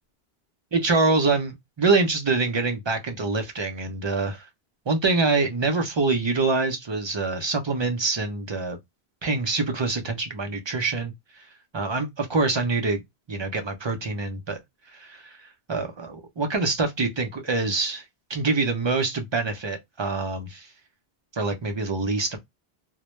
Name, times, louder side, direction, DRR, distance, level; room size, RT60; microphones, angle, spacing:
voice 1, 0.7-4.5 4.9-8.8 9.2-11.1 11.7-13.0 13.3-14.6 14.9-15.4 15.7-18.0 18.3-20.7 21.3-22.4, right 3 dB, 50° right, 0.3 m, -25 dB
2.1 x 2.1 x 2.9 m
omnidirectional pair, 1.1 m